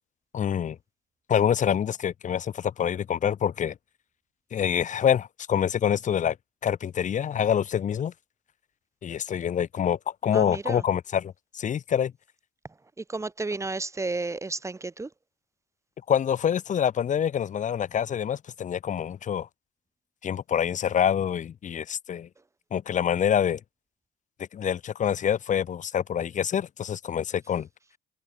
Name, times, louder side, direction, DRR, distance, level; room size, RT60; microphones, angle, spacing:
voice 1, 0.3-0.8 1.3-3.7 4.5-6.4 6.6-8.1 9.0-12.1 16.1-19.5 20.2-22.3 22.7-23.6 24.5-27.7, left 9 dB, 45° left, 3.3 m, -26 dB
voice 2, 10.3-10.8 13.0-15.1, right 3 dB, 15° right, 4.4 m, -32 dB
cardioid pair, 110°, 17 cm